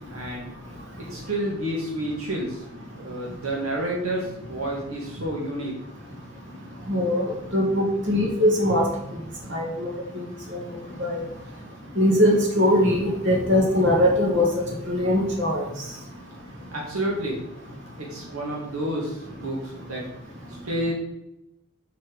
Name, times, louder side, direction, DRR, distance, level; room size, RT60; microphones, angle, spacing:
voice 1, 0.1-0.5 1.0-2.6 2.9-5.7 16.7-17.4 18.0-20.0 20.6-20.9, right 1 dB, 80° right, -3 dB, 1.9 m, -29 dB
voice 2, 6.9-7.2 7.5-8.8 9.5-9.9 10.5-10.6 11.0-11.2 12.0-14.5 14.9-15.6, left 1 dB, 55° right, -1 dB, 2.5 m, -21 dB
7.5 x 6.0 x 5.1 m, 0.86 s
head